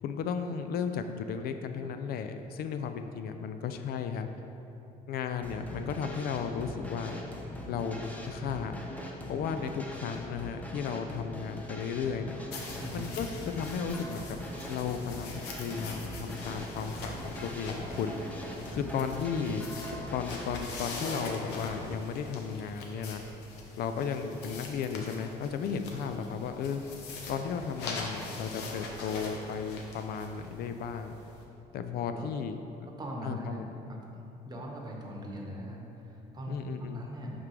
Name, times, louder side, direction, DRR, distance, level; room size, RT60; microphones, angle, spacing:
voice 1, 0.0-4.3 5.1-7.2 7.7-8.8 9.3-12.4 12.9-13.3 13.5-14.4 14.7-18.2 18.7-19.6 20.1-23.2 23.8-26.8 27.3-31.1 31.7-32.6 33.2-33.7 36.5-37.0, left 6 dB, 65° left, 8 dB, 0.4 m, -34 dB
sound 1, 5.4-20.6, equal, 10° left, 0.7 m, -42 dB
sound 2, 12.5-31.4, left 3 dB, 90° left, 0.9 m, -43 dB
voice 2, 18.7-19.6 32.0-32.3 33.0-33.6 33.9-36.6 36.9-37.3, equal, 25° right, -1 dB, 1.0 m, -41 dB
10.5 x 3.6 x 3.3 m, 2.9 s
cardioid pair, 110°, 17 cm